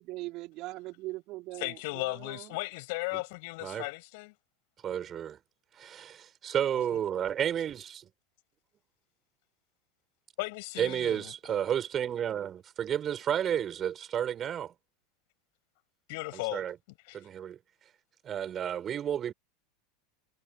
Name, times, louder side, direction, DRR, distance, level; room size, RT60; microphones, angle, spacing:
voice 1, 0.0-2.6, right 20 dB, 50° right, 3.3 m, -41 dB
voice 2, 1.6-4.3 10.4-11.3 16.1-16.6 17.0-17.2, left 27 dB, 55° left, 6.8 m, -36 dB
voice 3, 4.8-5.4 5.8-6.2 6.4-8.0 10.8-14.7 16.5-16.7 17.1-17.6 18.3-19.3, right 9 dB, 30° right, 5.4 m, -31 dB
figure-of-eight pair, 85°, 0 cm